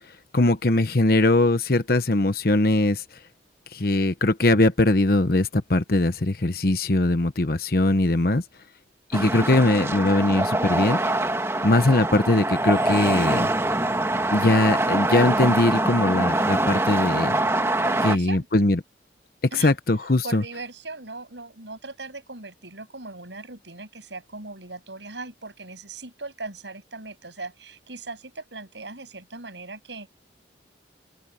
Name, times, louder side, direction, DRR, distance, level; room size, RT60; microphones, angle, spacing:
voice 1, 0.3-3.2 3.7-8.4 9.1-11.0 11.6-13.5 14.3-17.3 18.0-18.8 19.5-20.4, left 2 dB, 55° left, 1.0 m, -21 dB
sound 1, 9.1-18.2, right 2 dB, 15° right, 1.5 m, -24 dB
voice 2, 17.8-18.5 19.5-19.7 20.2-30.1, right 3 dB, 85° right, 7.7 m, -39 dB
open air
head